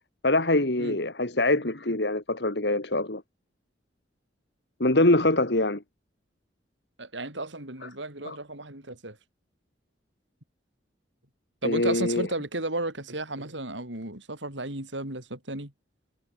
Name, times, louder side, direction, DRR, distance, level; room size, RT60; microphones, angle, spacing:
voice 1, 0.2-3.2 4.8-5.8 7.8-7.9 8.3-8.4 11.6-12.3, left 2 dB, 65° left, 2.5 m, -24 dB
voice 2, 7.0-9.2 11.6-15.7, right 2 dB, 80° right, 6.8 m, -34 dB
head